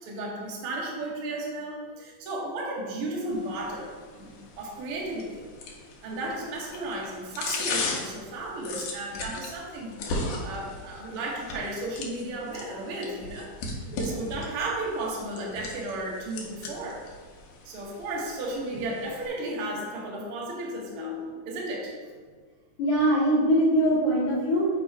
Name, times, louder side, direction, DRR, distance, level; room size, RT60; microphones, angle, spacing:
voice 1, 0.0-5.5 6.0-10.0 10.4-13.5 14.0-17.0 17.6-21.2 21.4-21.9, right 2 dB, 60° right, -2 dB, 1.6 m, -34 dB
sound 1, 3.3-19.3, left 3 dB, 80° left, 2.3 m, -38 dB
voice 2, 8.6-9.0 13.9-14.0 20.9-21.3 22.8-24.7, equal, 60° left, -8 dB, 1.7 m, -24 dB
7.3 x 3.0 x 4.5 m, 1.5 s
omnidirectional pair, 3.6 m